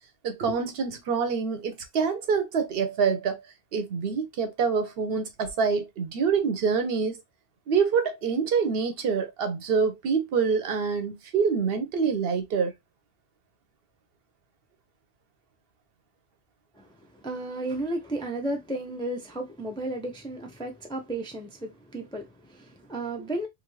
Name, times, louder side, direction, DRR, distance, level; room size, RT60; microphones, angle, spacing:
voice 1, 0.2-3.4 3.7-7.2 7.7-12.7, right 5 dB, 60° right, 0.9 m, -26 dB
voice 2, 16.7-23.5, right 1 dB, 5° left, 0.4 m, -34 dB
2.6 x 2.6 x 3.0 m
omnidirectional pair, 1.2 m